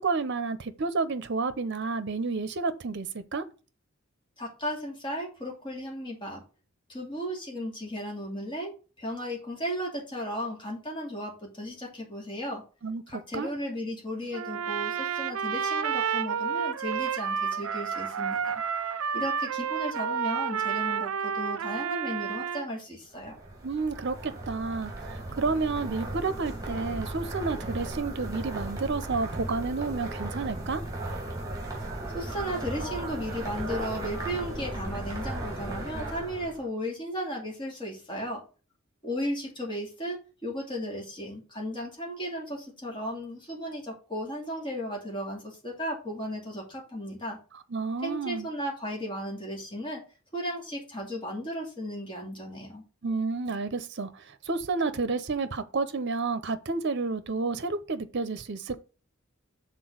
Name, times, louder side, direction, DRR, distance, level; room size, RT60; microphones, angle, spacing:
voice 1, 0.0-3.4 12.8-13.5 23.6-30.8 47.7-48.5 53.0-54.1 54.5-58.8, right 4 dB, 55° right, 0.8 m, -30 dB
voice 2, 4.4-6.4 6.9-12.6 13.1-18.6 19.1-23.3 32.1-38.4 39.0-47.4 48.0-50.0 50.3-52.8, equal, 25° left, 2.6 m, -35 dB
Trumpet, 14.3-22.7, right 7 dB, 90° right, 0.5 m, -30 dB
sound 1, 23.1-36.6, right 1 dB, 15° right, 2.4 m, -36 dB
6.2 x 4.1 x 6.2 m
head